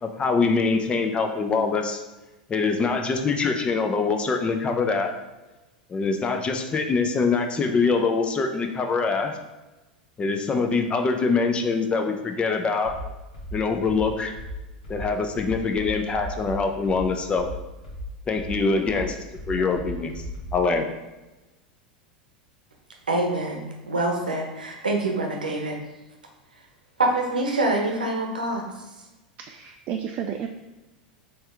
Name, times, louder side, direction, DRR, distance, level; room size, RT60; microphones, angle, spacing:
voice 1, 0.0-2.0 2.5-5.2 5.9-9.4 10.2-13.0 13.5-14.3 14.9-17.5 18.3-19.2 19.5-20.2 20.5-20.9, left 4 dB, 25° left, 5 dB, 0.5 m, -24 dB
sound 1, 12.8-20.7, equal, 80° left, 1.4 m, -36 dB
voice 2, 23.1-25.8 27.0-28.7, right 2 dB, 85° right, 1 dB, 0.8 m, -25 dB
voice 3, 29.5-30.5, right 8 dB, 40° right, 4 dB, 0.3 m, -31 dB
4.3 x 3.3 x 3.4 m, 1.1 s
figure-of-eight pair, 85°, 4 cm